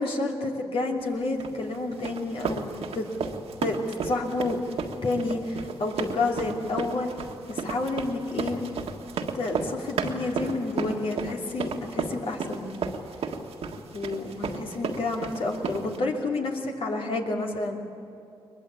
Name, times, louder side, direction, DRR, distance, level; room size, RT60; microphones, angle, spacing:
voice 1, 0.0-3.0 3.6-4.6 5.0-7.1 7.5-8.6 9.3-12.8 13.9-17.8, left 2 dB, 70° left, 0 dB, 3.0 m, -29 dB
sound 1, 1.4-16.0, right 5 dB, 85° right, 1.7 m, -33 dB
22.0 x 21.5 x 8.5 m, 2.6 s
cardioid pair, 60°, 10 cm